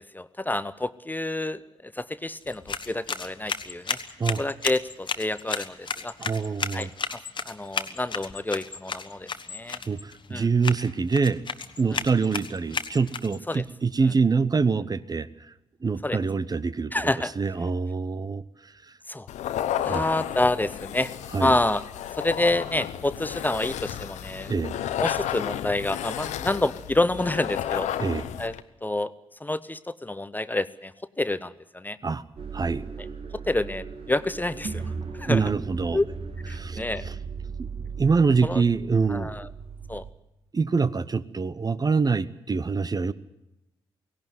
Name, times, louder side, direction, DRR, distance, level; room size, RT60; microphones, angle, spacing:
voice 1, 0.0-4.0 4.4-6.1 6.7-7.2 7.5-9.8 10.3-10.5 11.9-12.0 13.5-13.6 16.0-16.2 16.9-17.3 19.1-19.3 19.8-21.1 21.4-21.8 22.1-24.5 25.0-27.9 28.4-28.5 28.8-29.1 29.4-30.9 31.2-32.0 33.3-34.8 35.1-35.4 35.9-36.1 36.5-37.1 38.4-38.6 39.1-39.5 39.9-40.0, left 2 dB, 15° left, 15 dB, 0.7 m, -28 dB
sound 1, 2.4-13.6, left 5 dB, 35° left, 1.3 m, -34 dB
voice 2, 6.2-6.9 9.9-11.4 11.8-15.3 15.8-16.9 17.4-18.4 19.9-20.0 21.3-21.6 24.5-24.8 28.0-28.2 32.0-32.2 32.5-32.8 35.2-36.0 36.5-37.1 37.6-37.7 38.0-39.4 40.5-43.1, right 4 dB, 30° right, 17 dB, 0.8 m, -25 dB
sound 2, 19.3-28.6, left 11 dB, 65° left, 0.9 m, -32 dB
sound 3, 32.4-40.1, right 5 dB, 45° right, 2.1 m, -37 dB
17.5 x 17.0 x 9.4 m, 0.90 s
figure-of-eight pair, 40°, 13 cm